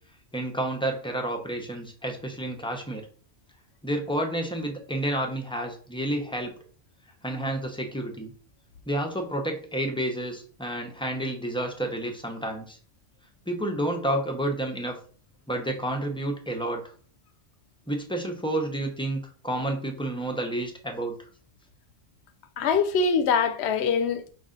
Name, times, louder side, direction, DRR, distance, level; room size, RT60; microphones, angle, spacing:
voice 1, 0.3-3.1 3.8-6.5 7.2-8.3 8.9-12.8 13.5-14.9 15.5-16.8 17.9-19.2 19.4-21.1, right 1 dB, 5° left, 0.5 m, -30 dB
voice 2, 22.6-24.3, left 5 dB, 80° left, 0.8 m, -23 dB
5.3 x 2.4 x 3.7 m
omnidirectional pair, 1.1 m